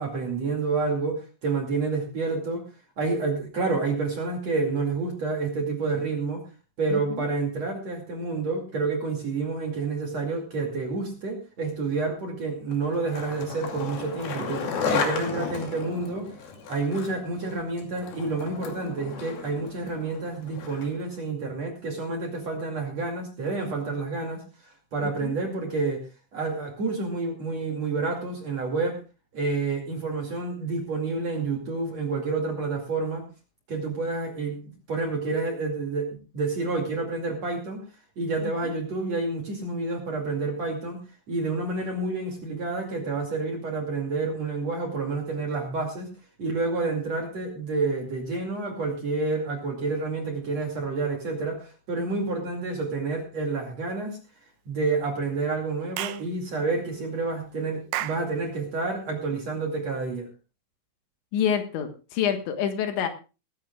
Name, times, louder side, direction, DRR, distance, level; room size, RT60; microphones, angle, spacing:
voice 1, 0.0-2.7 3.0-6.4 6.8-16.3 16.7-26.0 26.3-29.0 29.3-33.3 33.7-37.8 38.2-41.0 41.3-46.1 46.4-54.2 54.7-60.3, right 3 dB, 40° right, 1 dB, 2.9 m, -29 dB
voice 2, 6.9-7.3 25.0-25.4 38.4-38.7 61.3-63.1, left 8 dB, 75° left, 6 dB, 3.6 m, -28 dB
Skateboard, 12.7-21.1, left 5 dB, 55° left, 4.1 m, -34 dB
Clapping / Chirp tweet, 56.0-56.3 57.9-58.3, right 14 dB, 85° right, 2.3 m, -31 dB
19.5 x 15.0 x 2.4 m, 0.31 s
omnidirectional pair, 5.5 m